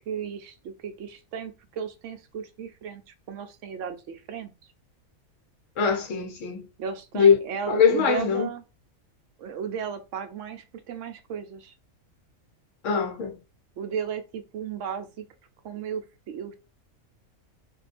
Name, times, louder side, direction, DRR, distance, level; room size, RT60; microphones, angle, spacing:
voice 1, 0.1-4.5 6.8-8.6 9.4-11.7 13.8-15.2 15.6-16.5, right 7 dB, 70° right, 0.8 m, -35 dB
voice 2, 5.8-6.6 7.1-7.4 7.7-8.5 12.8-13.3, left 6 dB, 65° left, 1.1 m, -21 dB
2.6 x 2.2 x 4.1 m
omnidirectional pair, 1.5 m